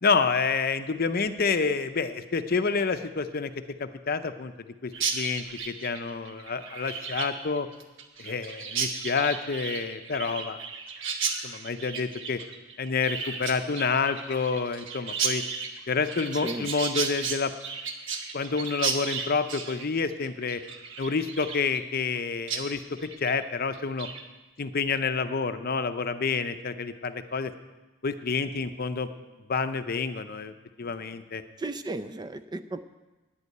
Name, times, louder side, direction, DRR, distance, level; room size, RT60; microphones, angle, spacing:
voice 1, 0.0-3.5 3.8-4.5 4.8-7.7 8.2-10.6 11.4-12.4 12.8-15.4 15.9-17.5 18.3-20.6 21.0-24.1 24.6-27.5 28.0-29.1 29.5-30.5 30.8-31.4, left 4 dB, 45° left, 10 dB, 0.6 m, -28 dB
Chirp tweet, 4.9-22.2 22.5-22.6 23.0-23.4 23.7-24.2, right 5 dB, 60° right, 1.2 m, -34 dB
voice 2, 16.3-16.7 31.6-32.8, right 2 dB, 20° right, 10 dB, 0.4 m, -35 dB
10.0 x 8.3 x 9.4 m, 1.1 s
head